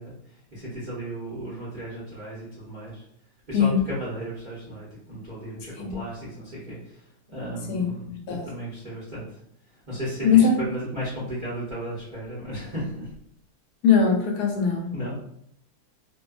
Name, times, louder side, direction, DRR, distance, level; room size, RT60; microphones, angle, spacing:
voice 1, 0.0-3.1 3.5-9.4 9.7-13.1 14.9-15.2, equal, 50° right, -8 dB, 0.5 m, -35 dB
voice 2, 7.7-8.4 10.2-10.6 13.8-14.9, left 6 dB, 80° left, 1 dB, 1.2 m, -21 dB
2.6 x 2.2 x 2.3 m, 0.70 s
omnidirectional pair, 1.7 m